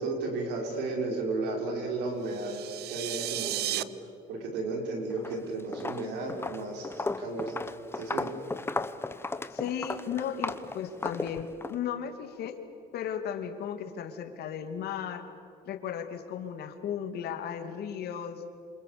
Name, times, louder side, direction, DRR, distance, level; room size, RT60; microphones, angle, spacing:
voice 1, 0.0-2.6 2.9-3.9 4.3-7.5 7.9-8.3, right 3 dB, 90° right, 2 dB, 5.9 m, -33 dB
sound 1, 2.2-3.8, right 14 dB, 70° right, 0.8 m, -34 dB
Walk footsteps, 5.1-5.4 5.7-11.8, left 3 dB, 15° left, 1.0 m, -35 dB
voice 2, 9.5-12.6 12.9-15.3 15.7-18.4, left 8 dB, 70° left, 7 dB, 2.6 m, -35 dB
27.5 x 27.0 x 7.0 m, 2.6 s
cardioid pair, 110°, 17 cm